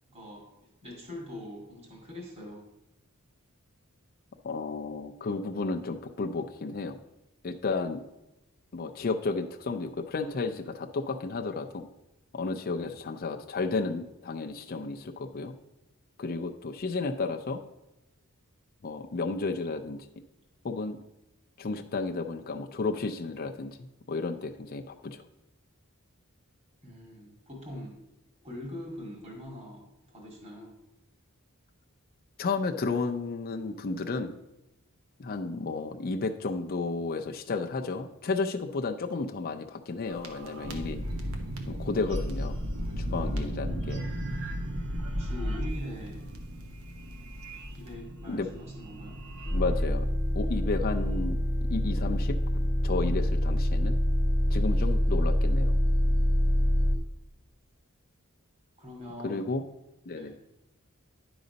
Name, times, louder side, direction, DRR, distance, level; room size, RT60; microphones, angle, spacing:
voice 1, 0.1-0.5 0.8-2.7 26.8-28.0 28.4-30.7 44.9-46.3 47.7-49.2 54.6-55.1 58.8-59.6 60.1-60.4, left 1 dB, 30° right, -2 dB, 2.1 m, -43 dB
voice 2, 4.4-7.0 7.4-8.0 8.7-11.9 12.3-15.5 16.2-17.6 18.8-20.0 20.6-21.0 21.6-23.8 24.1-25.2 32.4-34.4 35.2-41.0 41.7-42.6 43.0-44.0 48.3-48.5 49.5-50.1 50.4-51.4 51.7-52.4 52.8-54.0 54.5-55.8 59.2-59.6 60.1-60.3, left 3 dB, 45° left, 4 dB, 0.5 m, -32 dB
sound 1, 40.1-49.9, equal, 70° right, 1.1 m, -35 dB
sound 2, 49.4-57.0, left 1 dB, 10° right, 1.0 m, -25 dB
10.0 x 4.0 x 5.2 m, 0.92 s
head